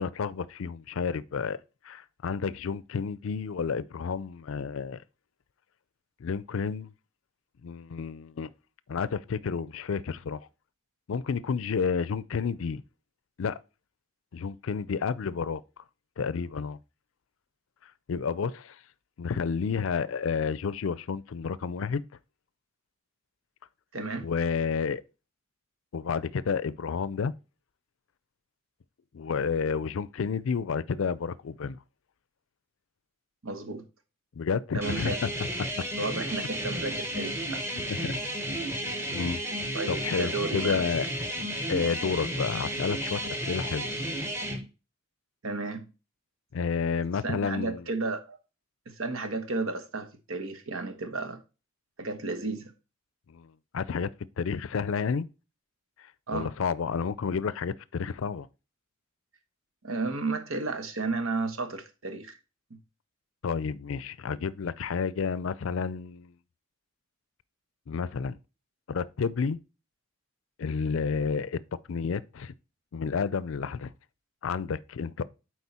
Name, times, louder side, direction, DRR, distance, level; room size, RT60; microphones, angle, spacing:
voice 1, 0.0-1.6 1.8-5.0 6.2-6.9 7.6-8.5 8.9-10.4 11.1-12.8 13.4-13.6 14.3-15.6 16.2-16.8 18.1-18.8 19.2-22.0 24.2-25.0 25.9-27.3 29.1-31.8 34.4-35.3 35.6-35.8 37.9-38.3 39.1-39.4 39.9-41.1 41.7-43.9 46.5-47.8 53.3-53.5 53.7-54.1 54.4-55.3 56.3-58.5 63.4-66.3 67.9-68.4 68.9-69.6 70.6-71.6 71.9-72.5 72.9-73.9 74.4-75.2, left 5 dB, 75° left, 0.4 m, -30 dB
voice 2, 23.9-24.3 33.4-33.8 34.7-35.2 36.0-37.6 39.7-40.8 45.4-45.9 47.2-48.4 48.9-51.4 52.0-52.7 56.3-56.5 59.8-62.4, right 3 dB, 80° right, 1.2 m, -33 dB
sound 1, 34.8-44.6, right 1 dB, 10° right, 1.2 m, -32 dB
8.1 x 4.6 x 4.2 m
head